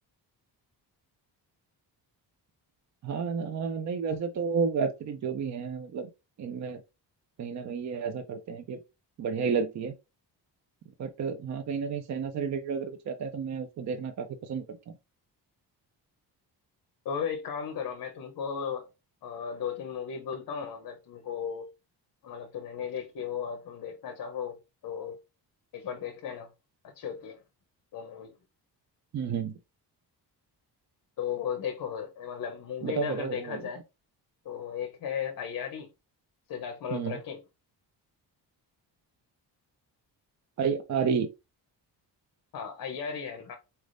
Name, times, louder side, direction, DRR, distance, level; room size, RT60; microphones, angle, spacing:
voice 1, 3.0-6.1 6.4-6.8 7.4-8.8 9.2-9.9 11.0-14.9 29.1-29.6 32.8-33.6 36.9-37.2 40.6-41.3, right 6 dB, 45° right, 0.5 m, -31 dB
voice 2, 17.0-18.9 19.2-21.7 22.2-24.6 24.8-25.2 25.7-26.5 26.8-27.4 27.9-28.3 31.2-33.8 34.4-35.9 36.5-37.4 42.5-43.5, left 7 dB, 55° left, 0.7 m, -35 dB
4.3 x 3.3 x 2.5 m
wide cardioid pair, 175°, 41 cm